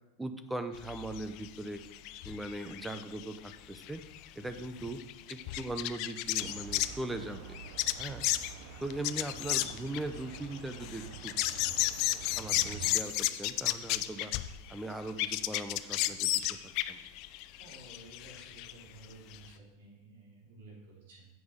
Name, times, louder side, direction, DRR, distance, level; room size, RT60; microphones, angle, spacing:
voice 1, 0.2-1.8 2.3-4.0 4.4-5.0 5.3-7.6 8.0-8.3 8.8-11.3 12.4-14.3 14.7-17.0, right 2 dB, 5° right, 9 dB, 0.6 m, -40 dB
sound 1, 0.7-7.0 7.5-14.8 15.1-18.7 19.0-19.1 19.3-19.4, left 16 dB, 45° left, 0.4 m, -33 dB
sound 2, 6.4-13.0, right 8 dB, 55° right, 0.7 m, -47 dB
voice 2, 17.6-21.3, right 2 dB, 80° right, -4 dB, 3.4 m, -53 dB
8.2 x 5.3 x 6.4 m, 0.98 s
supercardioid pair, 150°, 0 cm